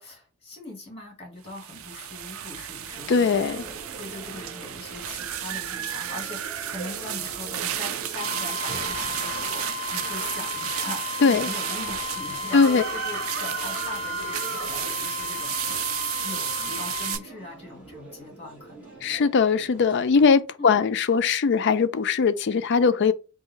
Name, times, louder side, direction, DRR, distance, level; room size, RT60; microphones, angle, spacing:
voice 1, 0.0-15.8 16.2-18.9 20.6-20.7, left 1 dB, 30° left, 2.0 m, -41 dB
sound 1, 1.5-17.2, right 10 dB, 80° right, 0.5 m, -32 dB
sound 2, 2.9-20.2, right 3 dB, 5° right, 1.7 m, -45 dB
voice 2, 3.1-3.6 11.2-11.5 12.5-12.8 19.0-23.1, left 5 dB, 55° left, 0.4 m, -20 dB
sound 3, 8.2-17.2, left 5 dB, 35° right, 2.0 m, -34 dB
3.7 x 2.7 x 4.4 m
head